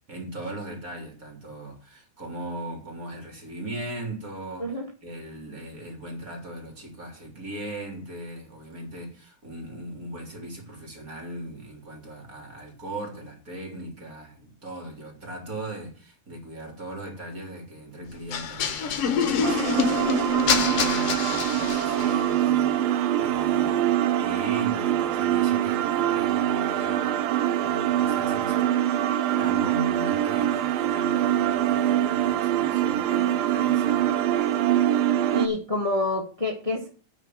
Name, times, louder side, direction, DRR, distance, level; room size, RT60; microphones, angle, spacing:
voice 1, 0.1-28.7 29.4-34.2, right 1 dB, 25° right, 3.4 m, -39 dB
sound 1, 18.3-22.2, left 7 dB, 55° left, 1.8 m, -26 dB
sound 2, 19.4-35.5, right 12 dB, 80° right, 2.6 m, -24 dB
voice 2, 35.3-36.9, left 2 dB, 20° left, 0.8 m, -28 dB
9.5 x 5.7 x 7.6 m
omnidirectional pair, 4.2 m